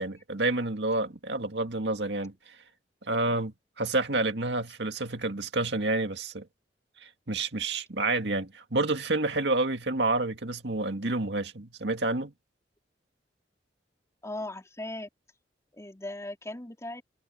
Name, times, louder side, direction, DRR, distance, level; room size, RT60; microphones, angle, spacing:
voice 1, 0.0-2.3 3.1-6.5 7.0-12.3, right 2 dB, 70° right, 2.2 m, -29 dB
voice 2, 14.2-15.1 15.7-17.0, left 1 dB, 15° left, 3.4 m, -38 dB
head